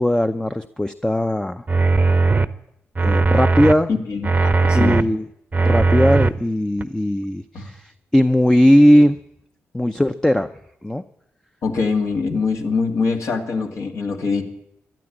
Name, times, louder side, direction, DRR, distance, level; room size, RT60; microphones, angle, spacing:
voice 1, 0.0-1.6 3.0-3.9 4.7-5.3 5.6-9.2 9.7-10.5 10.8-11.0, equal, 10° left, 8 dB, 0.6 m, -18 dB
sound 1, 1.7-2.5 3.0-3.7 4.2-5.0 5.5-6.3 6.8-6.9, right 3 dB, 30° right, 0.7 m, -17 dB
voice 2, 3.9-5.1 7.5-7.7 11.6-14.4, left 4 dB, 65° left, 3 dB, 2.2 m, -23 dB
13.5 x 11.0 x 8.8 m, 0.78 s
supercardioid pair, 50°, 5 cm